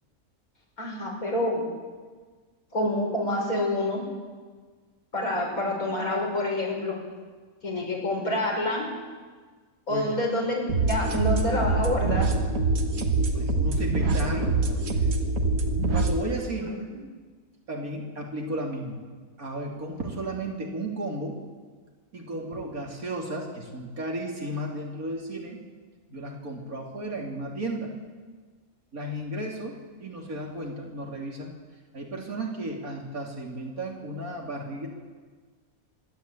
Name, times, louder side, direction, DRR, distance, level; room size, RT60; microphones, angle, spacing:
voice 1, 0.8-1.6 2.7-4.0 5.1-7.0 7.6-8.9 9.9-12.3 16.6-16.7, left 1 dB, 80° left, -2 dB, 5.9 m, -27 dB
voice 2, 9.9-10.2 13.3-15.1 15.9-16.8 17.7-19.0 19.4-21.4 22.1-25.6 26.1-27.9 28.9-31.5 31.9-34.9, right 1 dB, 85° right, 0 dB, 3.6 m, -34 dB
sound 1, 10.7-16.2, right 3 dB, 70° right, 2.0 m, -24 dB
25.5 x 12.0 x 8.7 m, 1.5 s
omnidirectional pair, 1.5 m